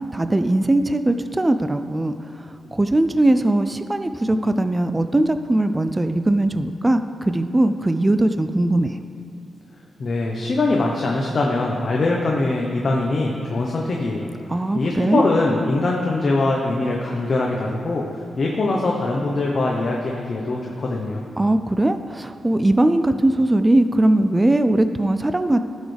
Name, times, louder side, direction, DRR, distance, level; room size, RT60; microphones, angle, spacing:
voice 1, 0.1-2.1 2.7-8.9 14.5-15.2 21.4-25.6, right 1 dB, 15° right, 9 dB, 0.3 m, -20 dB
voice 2, 10.0-21.2, left 2 dB, 40° left, -1 dB, 0.9 m, -22 dB
16.5 x 6.3 x 3.4 m, 2.8 s
wide cardioid pair, 155°, 0 cm